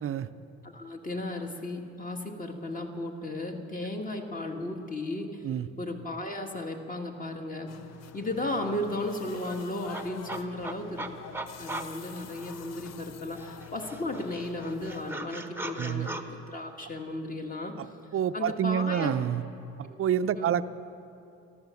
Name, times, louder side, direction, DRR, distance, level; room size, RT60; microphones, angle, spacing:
voice 1, 0.6-5.4 5.8-7.7 8.1-11.1 11.6-17.7 18.3-19.1 19.8-20.0 20.4-20.6, left 1 dB, 25° left, 3 dB, 1.7 m, -35 dB
sound 1, 7.7-15.1, left 10 dB, 60° left, 0.6 m, -47 dB
sound 2, 8.1-8.2 8.4-13.0 13.4-16.2, right 2 dB, 10° right, 0.9 m, -40 dB
voice 2, 15.8-16.1 17.8-17.9 18.1-19.4 19.8-20.6, right 9 dB, 45° right, 13 dB, 0.5 m, -28 dB
13.0 x 12.5 x 7.1 m, 2.6 s
cardioid pair, 90°, 30 cm